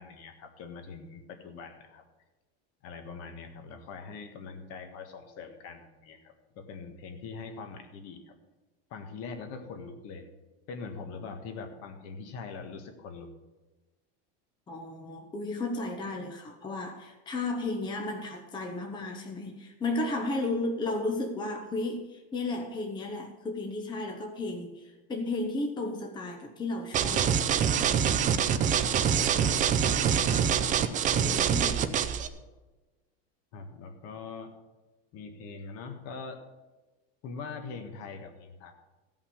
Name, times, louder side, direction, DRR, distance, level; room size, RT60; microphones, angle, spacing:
voice 1, 0.0-2.0 2.8-8.3 8.9-10.2 10.7-13.3 29.3-29.6 33.5-34.5 35.1-36.4 37.2-38.7, left 4 dB, 50° left, 5 dB, 1.6 m, -42 dB
voice 2, 14.7-27.4 27.9-28.2 29.3-29.9 31.2-32.2, left 2 dB, 15° left, 3 dB, 0.8 m, -34 dB
sound 1, 26.9-32.3, right 8 dB, 25° right, 0.5 m, -25 dB
15.0 x 5.6 x 7.0 m, 1.2 s
supercardioid pair, 150°, 31 cm